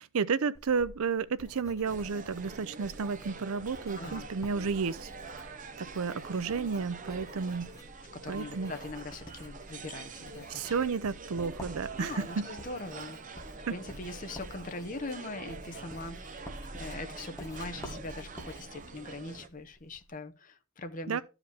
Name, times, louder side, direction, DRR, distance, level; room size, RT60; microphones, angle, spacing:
voice 1, 0.0-5.5 5.8-7.7 8.3-8.7 10.5-12.5 13.7-13.8 21.1-21.2, right 5 dB, 75° right, 0.5 m, -32 dB
Writing, 0.5-20.1, equal, 15° left, 1.3 m, -49 dB
sound 1, 1.9-19.5, right 4 dB, 35° right, 0.6 m, -45 dB
voice 2, 4.0-4.3 8.1-10.7 12.0-16.5 16.8-21.2, left 2 dB, 35° left, 0.8 m, -42 dB
12.5 x 4.9 x 3.4 m
head